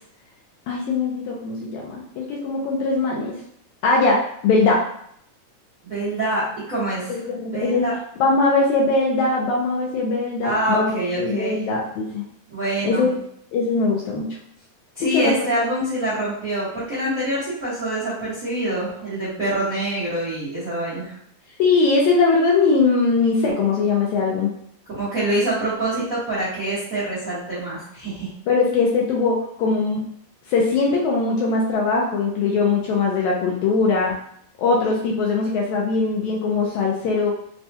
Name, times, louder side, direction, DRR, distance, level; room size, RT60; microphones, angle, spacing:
voice 1, 0.7-3.4 3.8-4.8 7.1-7.9 8.2-12.2 12.8-13.1 13.5-14.3 15.1-15.5 21.6-24.5 28.5-30.0 30.5-34.2 34.6-37.3, left 3 dB, 80° left, -3 dB, 1.7 m, -21 dB
voice 2, 5.8-7.2 7.5-7.9 10.4-11.7 12.5-13.1 14.9-21.2 24.9-28.3, right 1 dB, 80° right, -11 dB, 0.7 m, -25 dB
5.3 x 2.2 x 2.7 m, 0.68 s
omnidirectional pair, 3.8 m